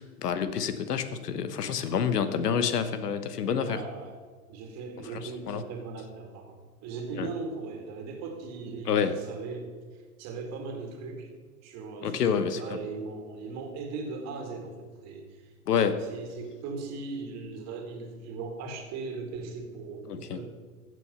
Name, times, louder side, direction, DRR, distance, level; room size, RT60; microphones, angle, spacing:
voice 1, 0.0-3.8 5.5-5.6 7.2-7.3 8.9-9.1 12.0-12.8 15.7-15.9 20.1-20.4, left 7 dB, 90° left, 11 dB, 1.1 m, -28 dB
voice 2, 3.6-4.2 4.5-11.3 11.6-15.5 16.0-20.5, right 4 dB, 35° right, 4 dB, 2.2 m, -39 dB
15.0 x 6.4 x 5.5 m, 1.5 s
hypercardioid pair, 130°, 45 cm